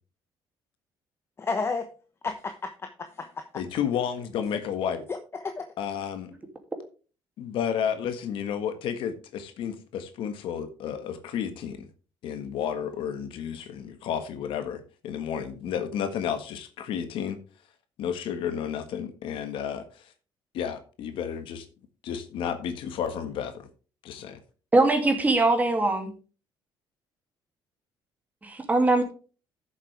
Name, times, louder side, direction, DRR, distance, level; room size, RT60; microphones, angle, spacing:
voice 1, 1.4-1.9 2.2-3.4 5.1-5.7, left 4 dB, 30° left, 7 dB, 0.9 m, -32 dB
voice 2, 3.5-5.0 5.8-6.3 7.4-11.9 12.2-17.4 18.0-20.1 20.5-21.6 22.0-23.7 24.0-24.4, left 8 dB, 70° left, 9 dB, 1.5 m, -32 dB
voice 3, 24.7-26.1 28.4-29.0, right 2 dB, 15° right, 5 dB, 2.5 m, -21 dB
13.5 x 7.2 x 3.4 m, 0.35 s
cardioid pair, 125°, 9 cm